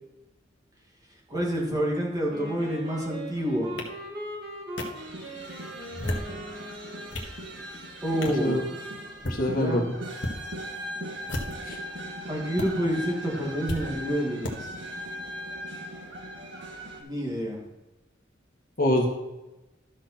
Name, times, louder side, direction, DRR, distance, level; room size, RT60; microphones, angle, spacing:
voice 1, 1.3-3.8 8.0-8.6 9.6-9.8 12.3-14.8 17.0-17.6, equal, 20° right, -3 dB, 2.4 m, -28 dB
Wind instrument woodwind instrument, 2.3-7.3, equal, 50° right, 2.1 m, -40 dB
sound 1, 3.8-3.9 4.8-4.9 5.8-6.3 6.8-7.3 8.2-8.4 9.1-9.4 10.1-10.4 11.2-11.7 12.6-12.7 13.7-13.8 14.4-14.5, left 1 dB, 70° left, 1.6 m, -32 dB
sound 2, 4.9-17.0, equal, 65° right, 1.7 m, -39 dB
voice 2, 8.3-8.6 9.2-9.9 11.6-11.8 18.8-19.1, left 1 dB, 50° left, 0 dB, 1.7 m, -25 dB
13.0 x 6.1 x 4.4 m, 1.0 s
head